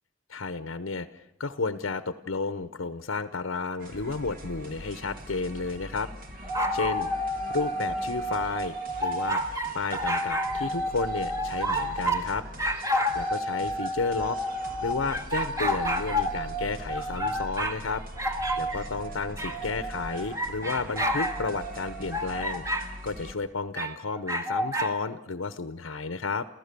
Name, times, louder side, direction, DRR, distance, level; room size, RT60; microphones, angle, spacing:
voice 1, 0.3-6.1 6.7-7.1 7.5-9.4 9.7-12.4 13.1-14.4 14.8-18.0 18.5-22.6 23.0-26.5, left 4 dB, 85° left, 11 dB, 0.9 m, -32 dB
sound 1, 3.8-23.3, equal, 45° right, 2.4 m, -42 dB
sound 2, 6.4-12.3 12.6-17.8 18.2-22.9 23.8-24.9, equal, 15° right, 1.7 m, -30 dB
29.0 x 15.0 x 6.8 m, 0.87 s
head